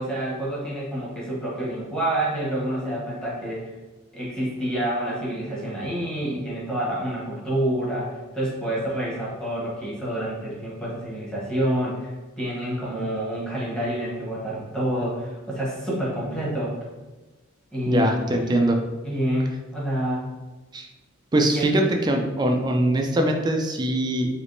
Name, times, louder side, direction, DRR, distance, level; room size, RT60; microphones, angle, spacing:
voice 1, 0.0-3.6 4.1-12.1 12.4-16.8 17.7-18.6 19.0-20.3 21.5-21.7, right 1 dB, 5° left, -7 dB, 1.0 m, -28 dB
voice 2, 17.9-18.8 20.7-20.9 21.3-24.3, right 1 dB, 20° right, 3 dB, 0.3 m, -22 dB
3.4 x 2.8 x 2.6 m, 1.2 s
head